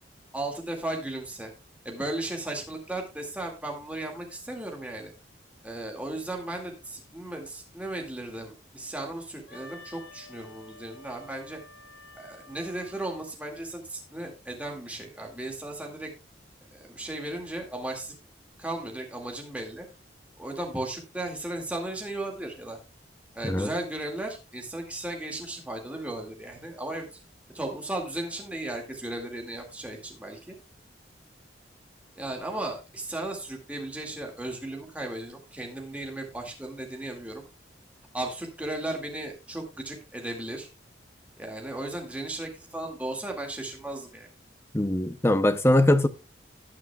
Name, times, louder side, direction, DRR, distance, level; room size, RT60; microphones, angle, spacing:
voice 1, 0.3-1.5 1.8-5.1 5.6-11.6 12.2-16.1 16.7-18.1 18.6-19.9 20.4-22.8 23.3-27.1 27.5-30.5 32.2-37.4 38.1-40.7 41.4-44.3, right 1 dB, 5° right, 2.1 m, -35 dB
Wind instrument woodwind instrument, 9.5-13.3, left 2 dB, 70° left, 4.0 m, -50 dB
voice 2, 44.7-46.1, left 1 dB, 15° left, 0.6 m, -21 dB
18.5 x 6.3 x 2.3 m
head